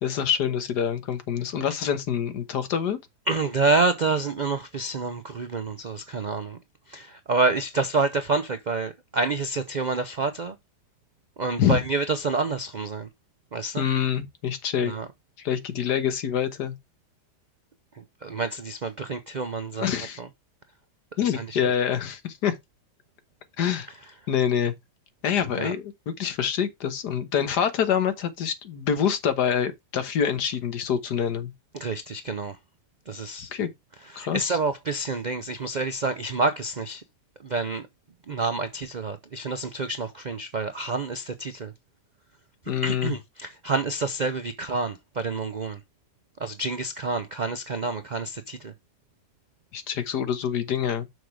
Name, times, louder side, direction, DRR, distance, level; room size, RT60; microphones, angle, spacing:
voice 1, 0.0-3.0 11.6-11.8 13.8-14.9 15.4-16.7 19.8-20.2 21.2-22.6 23.6-23.9 24.3-24.7 25.2-31.5 33.5-33.7 34.2-34.6 42.7-43.1 49.7-51.0, left 8 dB, 75° left, 1.7 m, -26 dB
voice 2, 3.3-6.6 6.9-10.5 11.4-13.1 13.5-13.8 14.8-15.1 18.0-19.9 20.2-20.3 21.3-21.6 25.6-25.7 31.7-32.6 33.1-33.5 34.1-37.0 37.4-37.9 38.3-41.7 42.8-45.8 46.4-48.7, right 3 dB, 75° right, 0.4 m, -28 dB
6.4 x 5.1 x 4.7 m
omnidirectional pair, 1.8 m